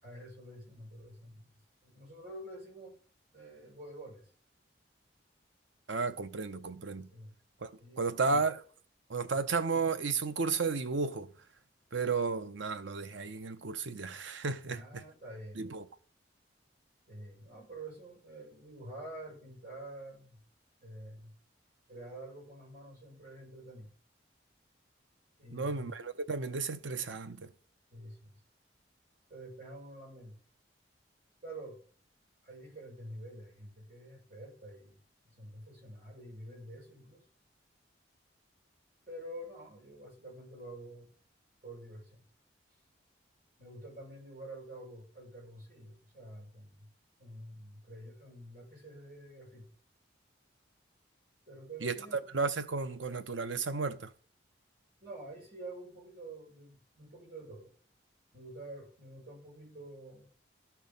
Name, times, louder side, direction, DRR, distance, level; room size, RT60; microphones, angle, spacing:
voice 1, 0.0-3.0 3.3-4.3 7.1-7.3 7.8-8.3 9.3-9.4 14.6-15.6 17.1-20.4 20.8-21.3 21.9-23.9 25.4-25.9 27.9-28.4 29.3-30.4 31.4-31.8 32.4-37.2 39.1-41.1 41.6-42.3 43.6-46.9 47.2-49.7 51.5-52.2 55.0-57.7 58.3-60.3, right 1 dB, 50° right, 6.2 m, -48 dB
voice 2, 5.9-7.1 7.6-7.7 8.0-8.6 9.1-11.3 11.9-15.0 15.6-15.9 25.5-27.5 51.8-52.0 52.3-54.1, right 4 dB, 85° right, 0.8 m, -33 dB
13.0 x 4.6 x 5.3 m
head